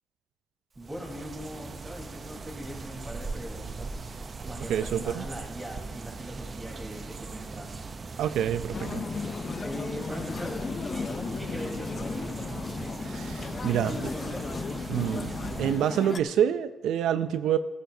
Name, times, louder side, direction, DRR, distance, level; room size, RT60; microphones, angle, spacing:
sound 1, 0.7-15.9, right 4 dB, 35° right, 0.6 m, -40 dB
voice 1, 0.8-4.1 4.4-7.8 9.4-12.9 13.8-14.7, equal, 10° right, -2 dB, 3.7 m, -40 dB
voice 2, 4.7-5.2 8.2-9.0 13.0-13.9 14.9-17.6, right 10 dB, 85° right, 12 dB, 0.4 m, -27 dB
sound 2, 8.7-16.2, left 5 dB, 35° left, 0.4 m, -35 dB
15.0 x 15.0 x 2.7 m, 1.2 s
cardioid pair, 125°, 0 cm